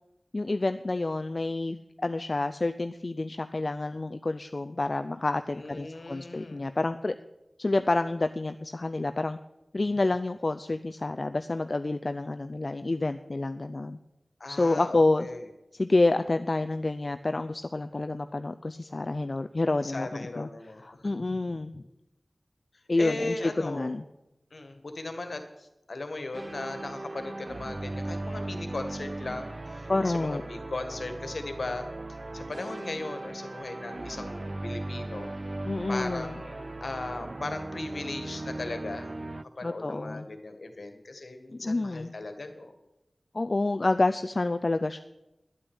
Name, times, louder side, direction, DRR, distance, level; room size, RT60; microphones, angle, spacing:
voice 1, 0.3-7.1 7.6-9.4 9.7-14.0 14.5-15.3 15.8-20.5 20.8-21.8 22.9-24.0 29.9-30.4 35.6-36.4 39.6-40.3 41.6-42.1 43.3-45.0, left 2 dB, 55° left, 9 dB, 0.5 m, -28 dB
voice 2, 5.5-6.7 14.4-15.4 19.8-21.1 23.0-24.0 24.5-25.4 25.9-31.9 32.3-35.3 35.9-39.2 39.6-42.7, left 2 dB, 75° left, 7 dB, 1.7 m, -37 dB
sound 1, 26.3-39.4, right 2 dB, 45° right, 0.4 m, -38 dB
11.0 x 8.8 x 8.8 m, 0.94 s
wide cardioid pair, 50°, 0 cm